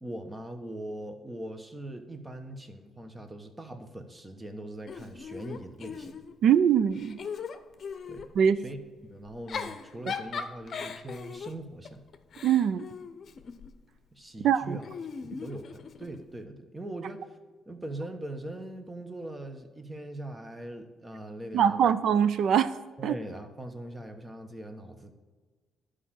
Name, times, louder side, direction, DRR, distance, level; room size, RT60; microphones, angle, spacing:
voice 1, 0.0-6.2 8.1-8.3 8.6-8.8 9.1-12.0 14.1-14.9 15.2-17.4 17.7-21.9 23.0-25.1, right 1 dB, 20° right, 6 dB, 1.2 m, -41 dB
Giggle / Chuckle chortle, 4.9-6.5 6.9-8.3 9.3-13.8 14.8-16.2, left 6 dB, 50° left, 0.7 m, -39 dB
voice 2, 6.4-7.2 8.4-8.6 10.1-10.2 12.4-12.9 14.4-14.8 21.5-22.8 23.0-23.1, right 8 dB, 70° right, 15 dB, 0.5 m, -23 dB
11.0 x 5.0 x 7.5 m, 1.4 s
cardioid pair, 90°, 0 cm